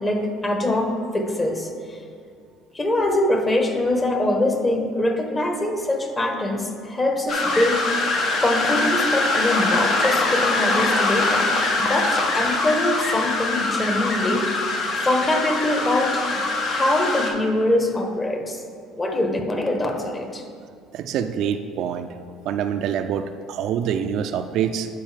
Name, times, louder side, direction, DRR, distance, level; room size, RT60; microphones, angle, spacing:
voice 1, 0.0-2.0 2.7-8.1 8.4-11.5 11.8-16.2 16.6-18.6 19.0-20.5, left 1 dB, 25° left, 4 dB, 1.2 m, -23 dB
sound 1, 7.3-17.3, left 2 dB, 55° left, 1.1 m, -23 dB
voice 2, 20.9-22.2 22.5-24.9, right 8 dB, 65° right, 9 dB, 0.4 m, -25 dB
11.5 x 4.7 x 3.4 m, 2.3 s
supercardioid pair, 75°, 0 cm